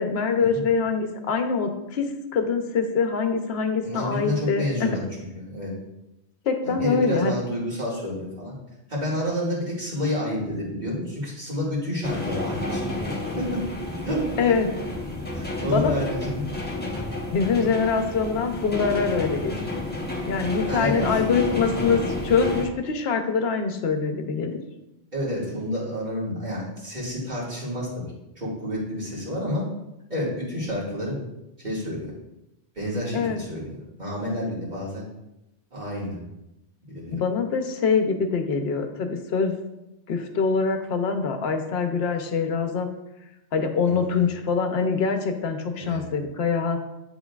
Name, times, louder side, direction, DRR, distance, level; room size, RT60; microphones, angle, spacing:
voice 1, 0.0-2.1 2.3-4.9 6.5-7.3 14.4-14.7 15.7-15.9 17.3-19.6 20.3-24.6 33.1-33.4 37.1-39.6 40.1-42.9 43.5-46.8, left 5 dB, 65° left, 6 dB, 0.9 m, -24 dB
voice 2, 3.8-5.7 6.6-8.5 8.9-13.6 14.0-14.5 15.3-16.5 20.7-21.2 25.1-28.0 28.4-29.6 30.1-31.2 31.6-32.1 32.8-33.6 34.0-35.0 35.7-36.2 36.9-37.2 43.8-44.3 45.7-46.0, left 1 dB, 40° right, -7 dB, 2.2 m, -29 dB
sound 1, 12.0-22.7, left 2 dB, 10° left, 0.8 m, -31 dB
10.0 x 3.9 x 2.4 m, 0.92 s
omnidirectional pair, 1.1 m